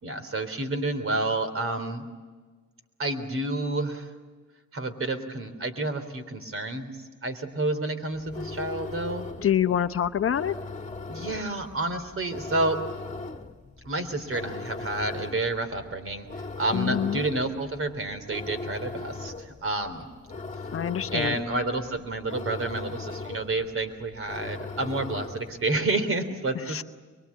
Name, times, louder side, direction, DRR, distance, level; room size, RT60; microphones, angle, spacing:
voice 1, 0.0-2.1 3.0-4.1 4.7-6.9 7.2-9.3 11.1-12.8 13.8-20.1 21.1-26.8, right 2 dB, 45° right, 9 dB, 3.5 m, -29 dB
sound 1, 8.2-25.6, left 3 dB, 25° left, 1.9 m, -39 dB
voice 2, 9.4-10.6 16.7-17.2 20.7-21.3 26.7-26.8, left 9 dB, 45° left, 10 dB, 0.9 m, -25 dB
23.5 x 23.5 x 8.5 m, 1.4 s
cardioid pair, 90°, 30 cm